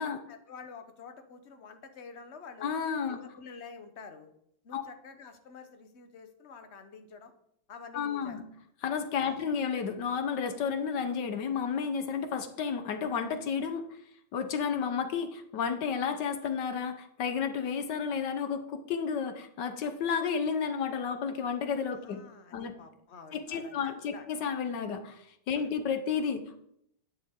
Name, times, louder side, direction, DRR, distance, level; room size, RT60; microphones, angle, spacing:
voice 1, 0.0-2.7 3.1-4.3 4.6-7.3 7.7-8.4 9.2-9.4 22.0-24.3 25.5-25.7, left 5 dB, 40° left, 7 dB, 1.0 m, -48 dB
voice 2, 2.6-3.2 4.7-4.8 7.9-8.4 8.8-13.8 14.3-22.2 22.5-22.7 23.3-26.6, left 6 dB, 60° left, 8 dB, 1.4 m, -32 dB
11.5 x 9.4 x 3.7 m, 0.72 s
omnidirectional pair, 2.3 m